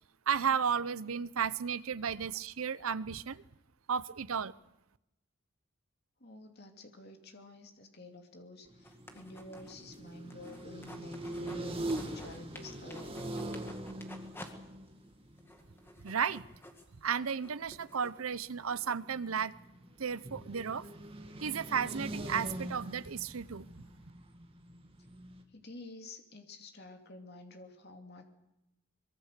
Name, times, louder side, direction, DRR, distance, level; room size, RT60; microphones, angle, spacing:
voice 1, 0.3-3.4 3.9-4.5 16.0-16.5 17.0-19.5 20.0-20.9 21.4-23.7, right 7 dB, 75° right, 17 dB, 0.7 m, -33 dB
voice 2, 6.2-13.3 25.5-28.3, left 2 dB, 45° left, 4 dB, 2.7 m, -50 dB
sound 1, 8.7-16.7 17.1-17.2 17.5-25.4, right 1 dB, 25° right, 2.4 m, -43 dB
sound 2, 8.8-11.6 11.9-14.5 14.9-15.0 15.4-18.9, left 1 dB, 10° left, 2.0 m, -52 dB
24.0 x 22.0 x 6.8 m, 0.89 s
head